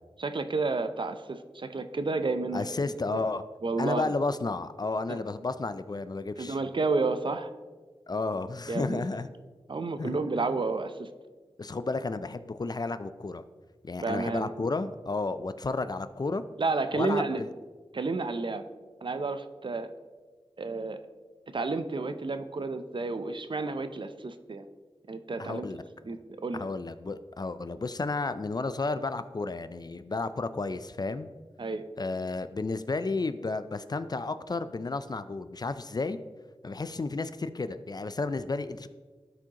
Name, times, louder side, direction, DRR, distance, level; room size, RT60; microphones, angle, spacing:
voice 1, 0.2-2.6 3.1-3.2 3.6-4.1 5.1-5.2 6.4-7.5 8.7-9.1 9.7-11.1 14.0-14.5 16.6-17.4 17.9-18.6 19.0-19.9 20.6-21.0 21.5-24.7 25.1-25.7 26.0-26.7 31.6-31.8, right 3 dB, 55° right, 9 dB, 0.5 m, -31 dB
voice 2, 2.5-3.4 3.8-6.6 8.1-9.3 10.0-10.4 11.6-13.4 13.8-16.4 16.9-17.5 25.4-25.8 26.5-31.3 32.0-36.2 36.6-38.9, left 3 dB, 40° left, 12 dB, 0.4 m, -32 dB
12.5 x 4.9 x 2.9 m, 1.4 s
wide cardioid pair, 55°, 10 cm